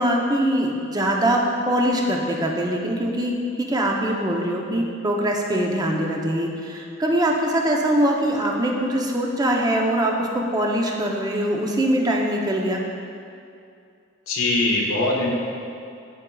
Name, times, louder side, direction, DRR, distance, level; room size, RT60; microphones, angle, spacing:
voice 1, 0.0-12.8, right 1 dB, 20° right, 0 dB, 0.7 m, -22 dB
voice 2, 14.3-15.3, left 2 dB, 80° left, -2 dB, 0.9 m, -21 dB
12.5 x 4.5 x 2.3 m, 2.5 s
head